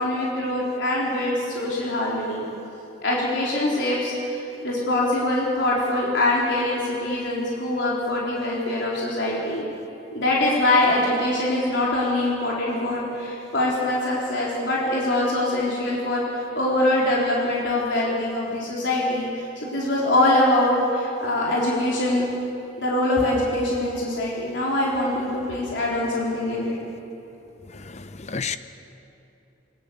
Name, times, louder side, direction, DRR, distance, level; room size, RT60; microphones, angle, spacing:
voice 1, 0.0-2.4 3.0-9.6 10.1-22.2 22.8-26.7, left 1 dB, 70° left, -5 dB, 3.9 m, -23 dB
voice 2, 27.8-28.6, left 5 dB, 35° left, 11 dB, 0.7 m, -31 dB
23.5 x 18.5 x 6.9 m, 2.9 s
head